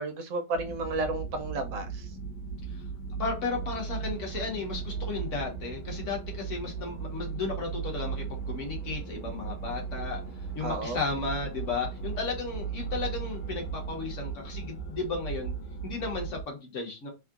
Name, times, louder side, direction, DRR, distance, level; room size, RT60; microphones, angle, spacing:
voice 1, 0.0-2.0 10.6-11.0, right 2 dB, 65° right, 5 dB, 0.9 m, -32 dB
sound 1, 0.5-16.4, right 6 dB, 75° left, 1.2 m, -37 dB
voice 2, 3.1-10.2 10.5-15.5 15.8-17.1, left 4 dB, 50° left, 1 dB, 1.0 m, -34 dB
sound 2, 3.5-14.0, right 6 dB, 85° right, 1.4 m, -50 dB
3.6 x 2.1 x 2.3 m, 0.26 s
omnidirectional pair, 1.9 m